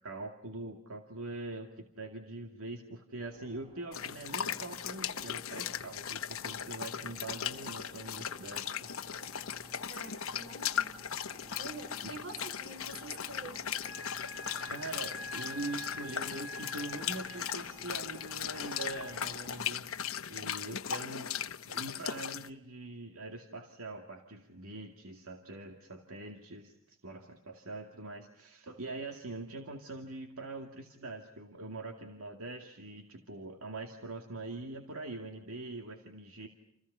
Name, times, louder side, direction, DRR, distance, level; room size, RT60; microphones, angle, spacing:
voice 1, 0.0-8.9 12.0-12.1 14.7-19.9 20.3-21.4 21.7-36.5, right 2 dB, 80° right, 4 dB, 2.3 m, -43 dB
sound 1, 3.2-19.7, equal, 25° right, 3.4 m, -55 dB
sound 2, 3.9-22.5, left 8 dB, 75° left, 1.1 m, -38 dB
voice 2, 9.9-11.0 11.6-13.7, right 2 dB, 60° right, 8 dB, 5.5 m, -46 dB
sound 3, 13.8-19.1, left 2 dB, 45° left, 1.7 m, -46 dB
29.5 x 29.0 x 5.6 m, 0.79 s
head